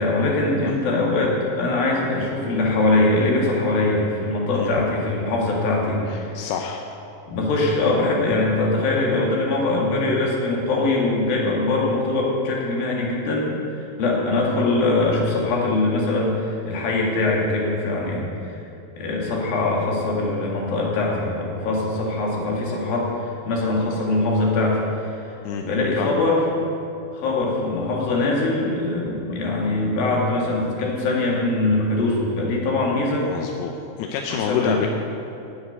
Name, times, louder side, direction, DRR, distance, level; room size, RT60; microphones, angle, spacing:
voice 1, 0.0-6.4 7.3-18.5 19.0-25.3 25.6-26.4 27.1-33.3 34.3-34.8, left 2 dB, 70° left, -2 dB, 3.9 m, -22 dB
voice 2, 6.1-6.8 25.4-25.7 26.0-26.1 33.2-34.9, left 7 dB, 90° left, 3 dB, 2.7 m, -28 dB
10.5 x 8.4 x 9.4 m, 2.9 s
omnidirectional pair, 4.4 m